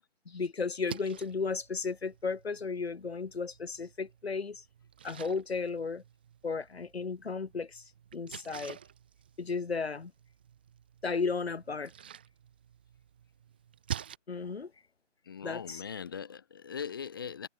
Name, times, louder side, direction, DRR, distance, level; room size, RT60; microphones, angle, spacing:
voice 1, 0.2-4.6 5.0-6.0 6.4-7.8 8.1-8.8 9.4-10.1 11.0-11.9 14.3-14.7 15.4-15.8, left 4 dB, 55° left, 1.5 m, -34 dB
Splash splatter, 0.6-14.2, right 9 dB, 10° right, 1.3 m, -48 dB
voice 2, 15.3-17.5, left 7 dB, 20° left, 1.9 m, -40 dB
figure-of-eight pair, 170°, 36 cm